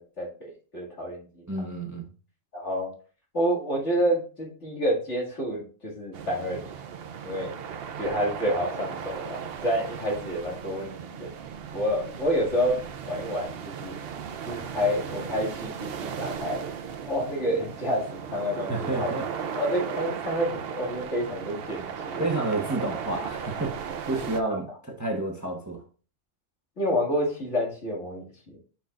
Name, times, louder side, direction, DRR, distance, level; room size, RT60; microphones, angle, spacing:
voice 1, 0.0-1.5 2.5-2.9 3.3-6.6 7.2-7.5 8.0-11.3 11.7-12.8 13.0-14.0 14.4-16.6 17.1-19.1 19.4-22.2 24.4-24.6 26.8-28.2, equal, 65° left, 2.6 m, -29 dB
voice 2, 1.5-2.1 18.7-19.2 22.2-25.8, right 2 dB, 15° right, 1.0 m, -30 dB
sound 1, 6.1-24.4, right 7 dB, 55° right, 0.8 m, -36 dB
10.0 x 5.7 x 2.5 m
omnidirectional pair, 1.3 m